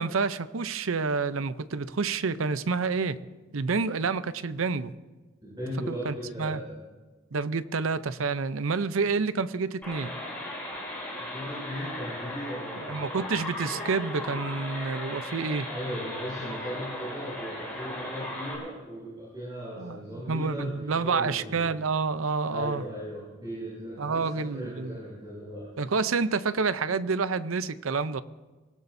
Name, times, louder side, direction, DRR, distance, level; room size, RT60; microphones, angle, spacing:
voice 1, 0.0-3.2 3.5-4.9 5.9-6.6 7.3-10.1 12.9-15.7 19.8-22.9 24.0-25.0 25.8-28.2, right 4 dB, 80° right, 14 dB, 0.6 m, -28 dB
voice 2, 5.4-6.7 11.2-13.3 15.7-21.6 22.5-25.7, equal, 20° right, -8 dB, 6.3 m, -37 dB
sound 1, 9.8-18.6, left 1 dB, 5° left, 6.6 m, -37 dB
24.0 x 17.5 x 2.7 m, 1.2 s
head